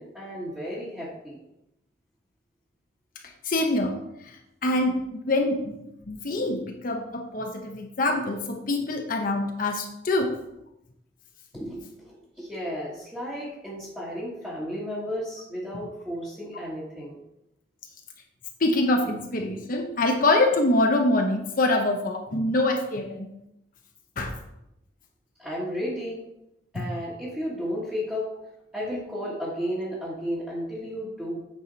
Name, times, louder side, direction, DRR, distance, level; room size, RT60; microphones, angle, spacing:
voice 1, 0.0-1.4 11.5-17.2 25.4-26.2 26.7-28.3 28.7-31.4, equal, 5° right, -8 dB, 1.5 m, -33 dB
voice 2, 3.4-4.0 4.2-5.8 6.1-10.3 18.6-23.3 24.2-24.3 26.7-26.9, left 2 dB, 50° left, 3 dB, 0.8 m, -25 dB
8.4 x 4.8 x 4.0 m, 0.86 s
head